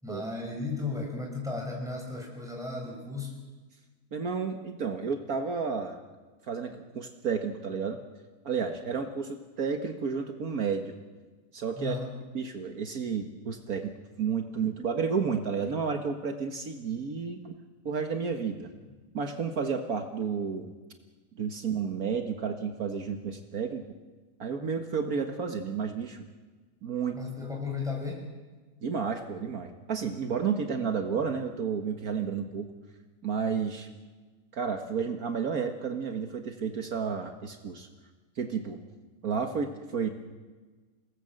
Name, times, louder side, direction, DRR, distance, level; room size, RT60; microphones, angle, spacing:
voice 1, 0.0-3.3 11.8-12.1 27.1-28.3, left 3 dB, ahead, -1 dB, 6.4 m, -35 dB
voice 2, 4.1-6.0 6.4-8.0 8.4-10.9 11.5-12.0 12.3-13.9 14.2-17.6 17.9-18.7 19.1-20.7 21.4-23.8 24.4-26.3 26.8-27.2 28.8-32.7 33.2-33.9 34.5-37.9 38.4-38.8 39.2-40.1, right 6 dB, 65° right, 5 dB, 1.9 m, -31 dB
28.5 x 18.5 x 7.8 m, 1.3 s
omnidirectional pair, 1.7 m